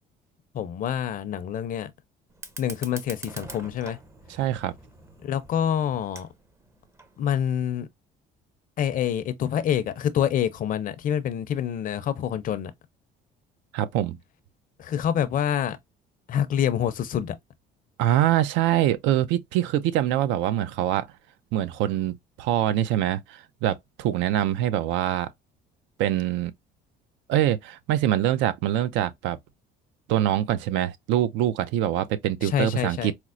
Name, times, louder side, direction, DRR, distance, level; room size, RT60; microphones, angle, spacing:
voice 1, 0.5-1.9 2.6-4.0 5.2-6.3 7.2-7.9 8.8-12.7 14.8-15.8 16.3-17.4 32.4-33.1, left 9 dB, 45° left, 0.5 m, -26 dB
Fire, 2.3-7.3, right 2 dB, 15° right, 0.5 m, -45 dB
voice 2, 4.3-4.7 13.7-14.2 18.0-21.1 21.5-25.3 26.0-26.5 27.3-29.4 30.1-33.1, right 12 dB, 80° right, 0.4 m, -24 dB
4.3 x 2.0 x 2.4 m
cardioid pair, 125°, 19 cm